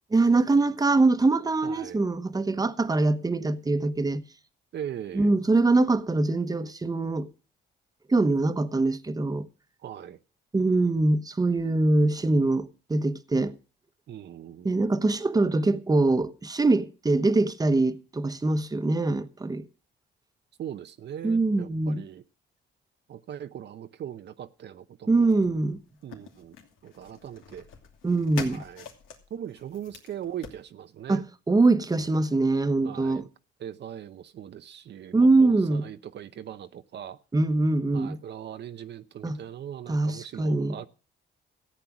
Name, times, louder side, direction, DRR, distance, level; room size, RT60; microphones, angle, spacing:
voice 1, 0.1-4.2 5.1-7.3 8.1-9.5 10.5-13.5 14.6-19.6 21.2-22.0 25.1-25.8 28.0-28.6 31.1-33.2 35.1-35.8 37.3-38.2 39.2-39.4 39.9-40.8, right 2 dB, 20° right, 1.1 m, -23 dB
voice 2, 1.6-2.0 4.7-5.4 9.8-10.2 14.1-14.7 20.6-22.2 23.1-25.4 26.0-26.6 26.8-27.7 28.5-28.9 29.3-31.2 32.8-33.3 33.6-37.2 37.9-40.9, right 10 dB, 60° right, 0.8 m, -40 dB
sound 1, 25.3-30.6, left 6 dB, 90° left, 2.8 m, -44 dB
14.5 x 8.5 x 6.0 m
cardioid pair, 90°, 20 cm